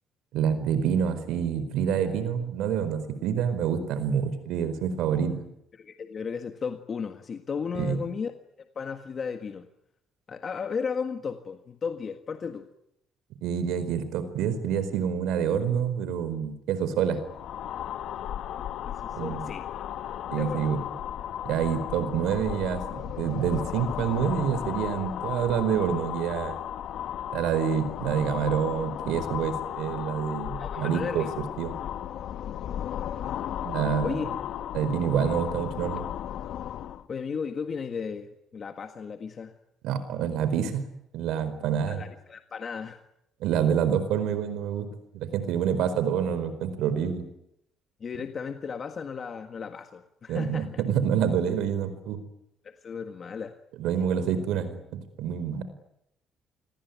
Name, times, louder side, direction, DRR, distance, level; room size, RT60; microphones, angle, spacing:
voice 1, 0.3-5.4 7.7-8.0 13.4-17.2 19.1-19.5 20.3-20.8 21.4-26.6 27.3-31.3 31.6-31.7 33.6-34.3 34.7-36.1 39.8-40.8 41.1-42.1 43.4-44.9 45.1-47.2 50.3-52.2 53.8-55.6, right 8 dB, 85° right, 13 dB, 4.5 m, -27 dB
voice 2, 5.7-8.3 8.7-9.7 10.3-12.7 18.8-19.7 20.4-20.7 30.6-31.3 34.0-34.3 37.1-39.5 41.9-43.0 48.0-50.8 52.6-53.6, left 6 dB, 35° left, 7 dB, 1.6 m, -35 dB
sound 1, 17.2-37.0, left 10 dB, 65° left, 1.3 m, -35 dB
28.5 x 21.0 x 9.5 m, 0.78 s
cardioid pair, 155°, 0 cm